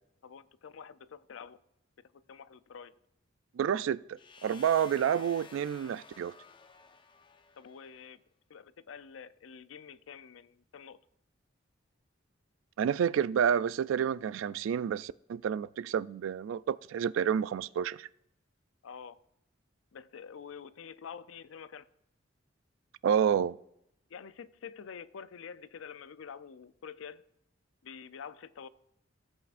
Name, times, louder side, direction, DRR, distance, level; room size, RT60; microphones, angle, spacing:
voice 1, 0.2-1.6 2.0-2.9 7.6-8.2 8.5-11.0 18.8-19.2 19.9-21.9 24.1-27.2 27.8-28.7, left 6 dB, 90° left, 0.5 m, -47 dB
voice 2, 3.6-6.3 12.8-18.1 23.0-23.6, right 8 dB, 80° right, 0.3 m, -29 dB
sound 1, 4.2-8.0, left 5 dB, 25° left, 0.5 m, -53 dB
17.0 x 8.3 x 2.5 m
head